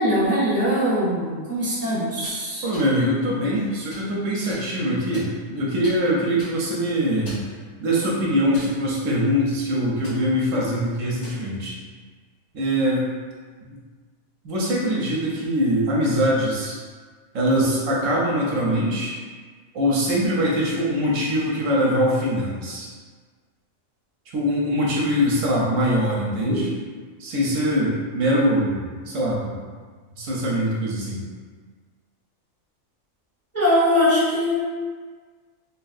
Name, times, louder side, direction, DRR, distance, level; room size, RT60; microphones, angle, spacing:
voice 1, 0.0-2.6 26.5-26.6 33.5-34.7, equal, 15° left, -10 dB, 0.5 m, -21 dB
sound 1, 2.1-2.4 2.7-2.9 3.5-4.1 4.5-4.6 5.1-5.6 5.8-6.0 6.4-6.6 7.1-7.5 8.0-8.1 8.5-9.1 9.4-9.6 10.0-10.2 11.0-11.4, left 1 dB, 85° left, 1.4 m, -41 dB
voice 2, 2.6-7.4 7.8-11.7 12.5-13.1 14.4-16.8 17.3-19.1 19.7-22.9 24.3-26.7 27.2-29.7 30.2-31.2, equal, 70° right, -4 dB, 0.9 m, -23 dB
2.9 x 2.5 x 2.4 m, 1.5 s
omnidirectional pair, 1.4 m